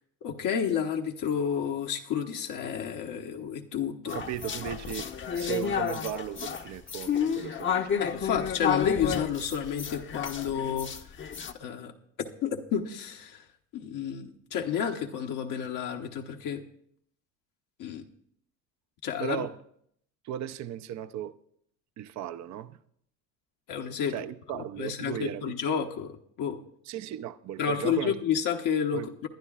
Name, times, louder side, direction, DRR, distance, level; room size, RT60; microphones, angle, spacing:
voice 1, 0.2-4.2 8.0-11.0 11.6-11.9 12.4-13.4 13.7-16.6 17.8-18.0 19.0-19.5 23.7-24.1 24.5-26.6 27.6-29.3, left 8 dB, 55° left, 1.0 m, -30 dB
sound 1, 4.1-11.5, left 7 dB, 30° left, 0.8 m, -31 dB
voice 2, 4.1-8.1 19.2-19.6 20.2-21.3 22.0-22.8 24.1-25.6 26.9-28.2 28.9-29.1, right 10 dB, 45° right, 0.6 m, -36 dB
21.0 x 11.0 x 2.4 m
supercardioid pair, 85°, 37 cm